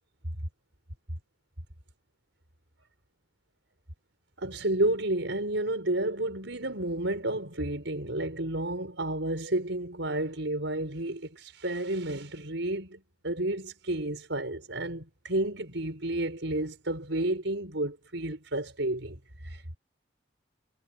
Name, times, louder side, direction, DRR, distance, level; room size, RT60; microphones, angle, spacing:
voice 1, 4.4-19.8, right 1 dB, 80° right, 5.5 m, -31 dB
head